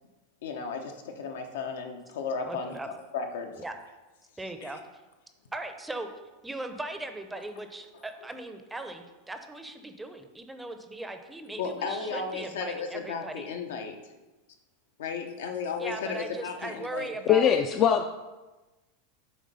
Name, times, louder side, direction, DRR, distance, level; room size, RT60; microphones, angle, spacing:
voice 1, 0.4-3.6 4.6-4.8 11.6-14.0 15.0-17.1, left 5 dB, 85° left, 4 dB, 0.9 m, -34 dB
voice 2, 2.4-2.9 3.6-3.7 4.4-4.8 5.5-6.1 6.4-13.5 15.8-17.5, right 2 dB, 10° right, 7 dB, 0.6 m, -38 dB
voice 3, 17.3-18.1, left 9 dB, 35° left, 6 dB, 0.3 m, -21 dB
7.6 x 3.0 x 5.4 m, 1.1 s
supercardioid pair, 135°, 0 cm